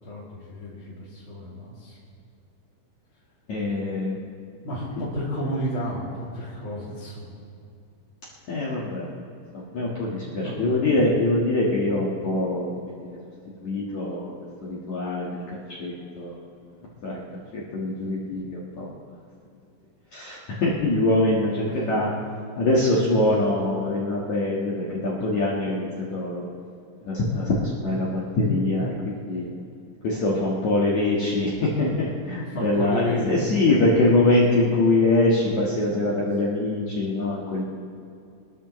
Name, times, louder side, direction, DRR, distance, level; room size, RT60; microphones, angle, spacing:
voice 1, 0.0-2.0 4.6-7.3 10.2-10.8 21.7-21.8 32.5-33.8 35.9-36.0, equal, 30° left, -9 dB, 2.7 m, -32 dB
voice 2, 3.5-4.2 8.5-9.1 9.5-12.9 13.6-14.3 14.7-15.4 15.8-16.4 17.0-17.2 17.5-18.9 20.1-22.1 22.6-26.4 27.0-29.5 30.0-37.6, left 2 dB, 60° left, -6 dB, 1.9 m, -23 dB
24.0 x 13.5 x 3.2 m, 2.5 s
omnidirectional pair, 6.0 m